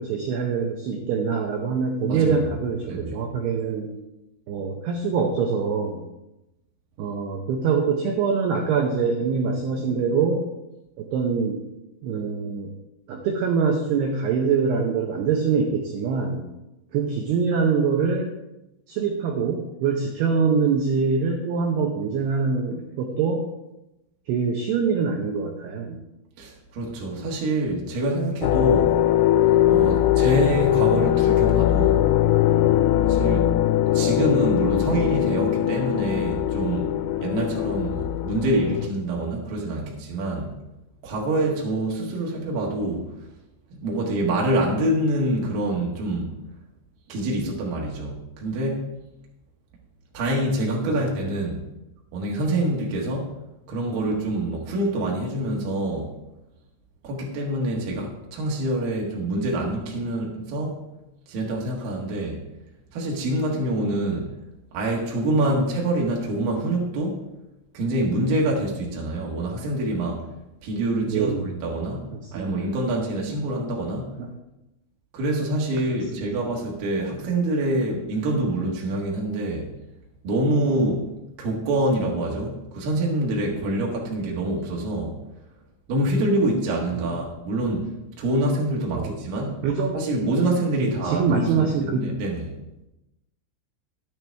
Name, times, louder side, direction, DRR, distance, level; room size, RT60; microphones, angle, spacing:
voice 1, 0.0-3.9 4.5-6.0 7.0-10.5 11.0-11.6 12.0-12.7 13.1-16.5 16.9-18.3 18.9-23.4 24.3-26.0 50.8-51.3 71.1-71.5 72.1-72.6 74.2-74.3 76.1-76.3 86.9-87.1 89.0-89.1 89.6-90.0 90.8-92.1, right 5 dB, 90° right, 2 dB, 2.3 m, -24 dB
voice 2, 2.1-2.4 2.9-3.2 26.4-29.0 29.7-32.0 33.0-33.5 33.9-36.9 37.2-40.5 41.0-43.1 43.8-46.3 47.1-48.9 50.1-51.6 52.1-53.3 53.7-56.1 57.0-60.8 61.3-62.4 62.9-64.3 64.7-67.2 67.7-70.3 70.6-74.2 75.1-79.7 80.2-81.1 81.4-85.2 85.9-89.6 89.9-92.5, right 1 dB, 60° right, -2 dB, 2.5 m, -26 dB
sound 1, 28.4-38.9, left 12 dB, 85° left, 3.0 m, -21 dB
12.5 x 9.2 x 3.4 m, 0.94 s
omnidirectional pair, 5.9 m